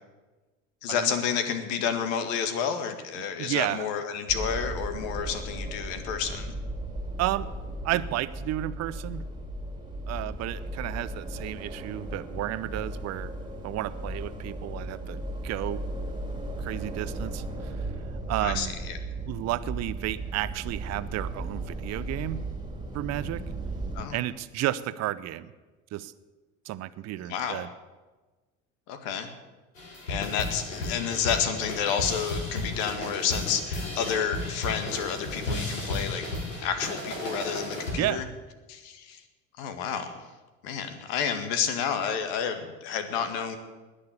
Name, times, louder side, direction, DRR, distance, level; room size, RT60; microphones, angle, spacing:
voice 1, 0.8-6.6 18.4-18.7 23.9-24.2 27.3-27.6 28.9-29.3 30.1-36.3 36.6-38.2 38.7-39.2 39.6-40.2 40.6-43.6, left 7 dB, 60° left, 8 dB, 1.9 m, -30 dB
voice 2, 3.4-3.9 7.2-7.5 7.8-9.2 10.1-13.3 13.6-15.8 16.6-17.9 18.3-18.7 19.2-22.4 22.9-23.4 24.1-25.5 25.9-26.1 26.6-27.7 38.0-38.3, right 15 dB, 40° right, 15 dB, 0.8 m, -32 dB
sound 1, 4.3-24.1, right 2 dB, 10° right, 2.6 m, -36 dB
sound 2, 29.8-38.1, left 2 dB, 80° left, 2.9 m, -34 dB
20.0 x 6.8 x 8.4 m, 1.2 s
figure-of-eight pair, 65°, 39 cm